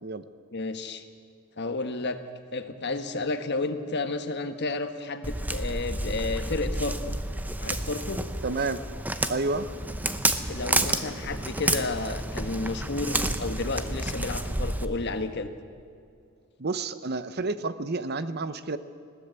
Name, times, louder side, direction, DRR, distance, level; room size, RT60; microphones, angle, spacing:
voice 1, 0.5-1.0 1.6-2.2 2.5-7.1 7.6-8.2 10.5-15.5, left 3 dB, 55° left, 8 dB, 1.4 m, -31 dB
Walk footsteps, 5.2-14.8, right 1 dB, 10° right, 0.8 m, -30 dB
voice 2, 8.4-8.8 9.3-9.7 16.6-18.8, right 3 dB, 50° right, 12 dB, 0.8 m, -30 dB
sound 1, 9.7-15.3, equal, 10° left, 5.6 m, -44 dB
20.5 x 16.5 x 8.2 m, 2.4 s
head